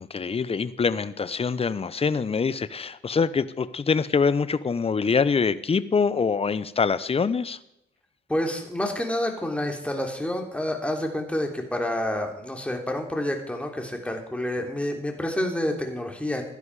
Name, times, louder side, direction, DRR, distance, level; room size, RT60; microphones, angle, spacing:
voice 1, 0.0-7.6, left 5 dB, 30° left, 15 dB, 0.9 m, -24 dB
voice 2, 8.3-16.4, left 1 dB, 5° left, 2 dB, 3.5 m, -28 dB
16.5 x 12.0 x 4.9 m, 0.82 s
cardioid pair, 90°, 20 cm